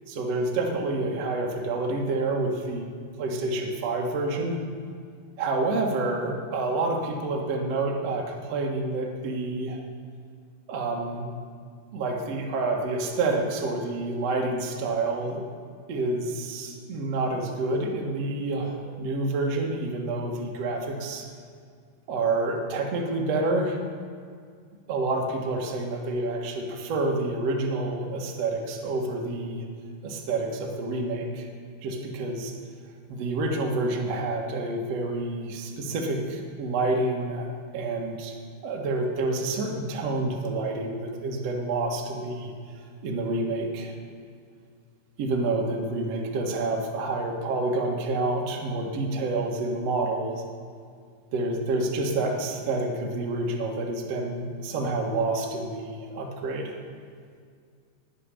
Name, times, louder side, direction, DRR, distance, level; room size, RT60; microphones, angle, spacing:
voice 1, 0.1-2.9 3.2-4.6 5.4-9.8 10.7-11.3 11.9-15.4 15.9-21.3 22.1-23.8 24.9-29.7 30.0-31.5 31.8-32.5 33.1-38.3 38.6-42.5 43.0-43.9 45.2-50.4 51.3-56.7, right 2 dB, 80° right, 1 dB, 1.4 m, -28 dB
12.0 x 7.5 x 9.8 m, 2.1 s
omnidirectional pair, 5.6 m